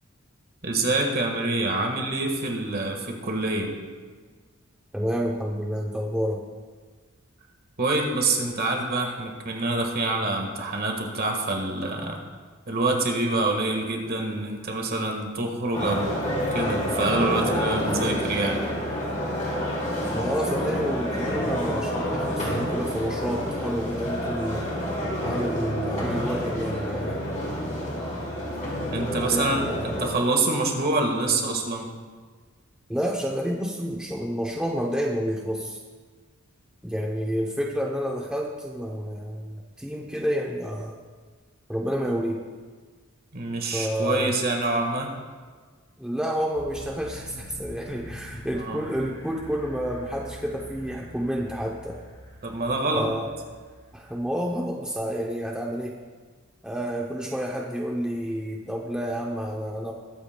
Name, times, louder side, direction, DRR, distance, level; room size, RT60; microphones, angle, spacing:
voice 1, 0.6-3.7 7.8-12.2 12.7-16.2 16.5-18.6 28.9-31.9 43.3-45.1 48.5-48.8 52.4-53.1, right 2 dB, 45° right, 2 dB, 1.5 m, -26 dB
voice 2, 4.9-6.4 20.1-24.7 25.2-27.2 29.2-29.8 32.9-35.8 36.8-41.0 41.7-42.5 43.7-44.4 46.0-52.0 52.9-53.3 53.9-56.0 56.6-59.9, equal, 5° right, -1 dB, 0.6 m, -29 dB
sound 1, 15.7-30.1, equal, 35° left, 3.3 m, -28 dB
sound 2, 46.5-54.6, left 1 dB, 20° left, 3.6 m, -44 dB
21.0 x 8.3 x 2.2 m, 1.5 s
head